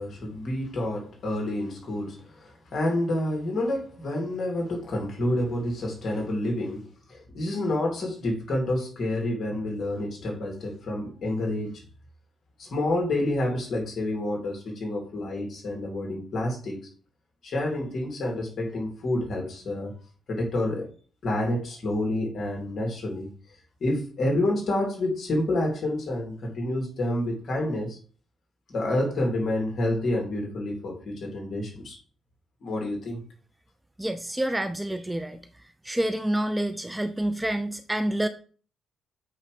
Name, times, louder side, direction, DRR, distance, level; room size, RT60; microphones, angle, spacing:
voice 1, 0.0-11.8 12.6-16.9 17.4-19.9 20.3-20.9 21.2-23.3 23.8-28.0 28.7-32.0 32.6-33.2, left 1 dB, 50° left, 2.9 m, -28 dB
voice 2, 34.0-35.4 35.8-38.3, right 1 dB, 10° right, 0.5 m, -28 dB
8.2 x 3.2 x 5.0 m
cardioid pair, 90°, 0 cm